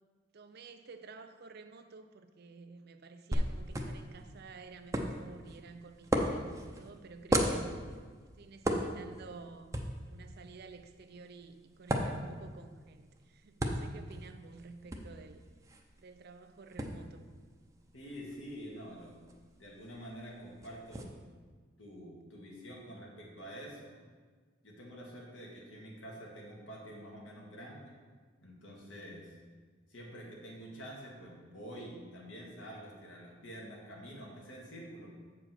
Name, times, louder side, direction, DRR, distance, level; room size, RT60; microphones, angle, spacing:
voice 1, 0.3-7.7 8.2-9.7 10.1-15.4 16.0-17.2, right 4 dB, 55° right, 8 dB, 0.5 m, -52 dB
sound 1, 3.3-21.0, right 1 dB, 15° right, 0.6 m, -38 dB
voice 2, 17.9-19.2 19.6-21.2 21.8-24.0 24.6-28.0 28.4-29.4 29.9-35.2, equal, 75° left, -2 dB, 1.8 m, -47 dB
7.6 x 4.9 x 6.0 m, 1.5 s
head